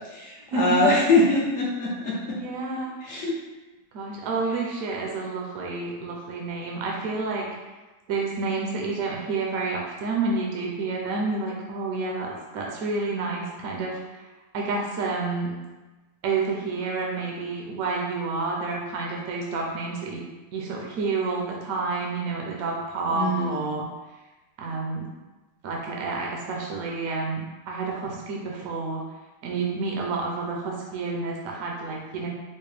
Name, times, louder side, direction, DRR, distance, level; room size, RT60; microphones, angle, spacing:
voice 1, 0.1-2.4 3.0-3.3 23.1-23.6, left 2 dB, 60° left, -4 dB, 0.9 m, -23 dB
voice 2, 2.4-3.0 3.9-7.5 8.1-14.2 14.5-15.5 16.2-20.2 20.5-23.9 24.6-25.1 25.6-29.0 29.4-32.3, right 3 dB, 70° right, -2 dB, 1.0 m, -29 dB
4.3 x 2.1 x 3.2 m, 1.2 s
omnidirectional pair, 1.8 m